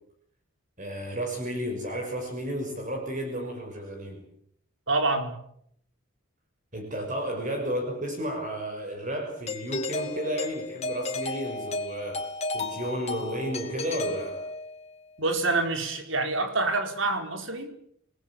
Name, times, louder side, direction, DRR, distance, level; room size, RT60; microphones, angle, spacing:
voice 1, 0.8-4.2 6.7-12.2 12.5-14.4, equal, 40° right, 3 dB, 6.0 m, -32 dB
voice 2, 4.9-5.3 15.2-17.7, right 3 dB, 65° right, 5 dB, 4.7 m, -26 dB
Doorbell, 9.5-14.9, left 2 dB, 30° left, 2.7 m, -33 dB
29.0 x 19.5 x 7.4 m, 0.68 s
head